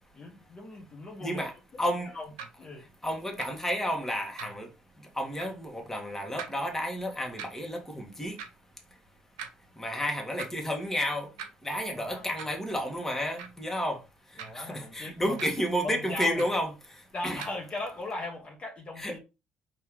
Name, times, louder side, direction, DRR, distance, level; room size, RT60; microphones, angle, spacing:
voice 1, 0.1-1.4 2.1-2.3 2.6-2.9 12.0-12.3 14.4-15.5 15.8-16.4 17.1-19.2, left 2 dB, 35° left, 1.2 m, -38 dB
voice 2, 1.2-2.1 3.0-4.7 5.1-8.4 9.8-11.3 11.6-14.0 14.5-16.7 17.2-17.4 19.0-19.2, equal, 10° left, 1.5 m, -31 dB
sound 1, 2.4-2.5 3.4-3.5 4.4-4.7 5.4-5.6 6.4-6.5 7.4-7.5 8.4-8.5 9.4-9.5 10.4-10.6 11.4-11.5 12.4-12.6 13.4-13.6 14.4-14.7 15.4-15.5 16.4-16.6 17.4-17.6, right 7 dB, 90° right, 0.7 m, -41 dB
4.4 x 2.8 x 3.8 m
supercardioid pair, 75°, 3 cm